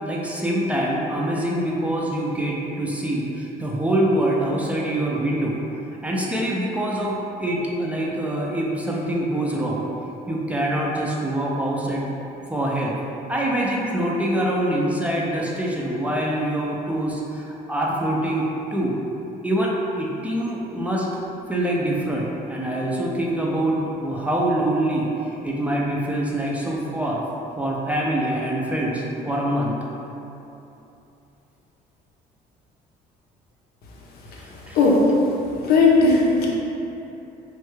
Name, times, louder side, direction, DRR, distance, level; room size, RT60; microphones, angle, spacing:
voice 1, 0.0-5.6 6.0-9.8 10.3-12.1 12.5-12.9 13.3-18.4 18.7-18.9 19.4-21.1 21.5-25.1 25.4-27.2 27.6-29.7 34.7-34.8, right 1 dB, 10° right, -4 dB, 0.4 m, -24 dB
voice 2, 35.6-36.5, left 3 dB, 70° left, -3 dB, 0.6 m, -16 dB
3.2 x 2.2 x 3.1 m, 2.9 s
cardioid pair, 110°, 17 cm